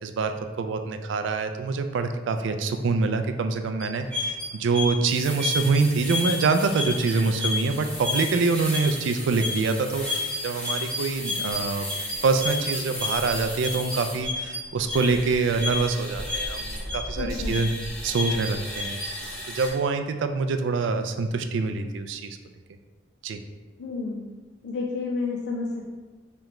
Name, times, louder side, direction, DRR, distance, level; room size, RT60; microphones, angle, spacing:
voice 1, 0.0-11.9 12.2-17.7 18.0-22.4 23.2-23.4, right 4 dB, 70° right, 8 dB, 0.3 m, -25 dB
sound 1, 3.8-19.7, left 2 dB, 5° left, 0.7 m, -31 dB
voice 2, 17.2-17.6 23.8-24.3 24.6-25.8, left 3 dB, 60° left, -1 dB, 0.4 m, -30 dB
3.3 x 3.0 x 3.6 m, 1.3 s
head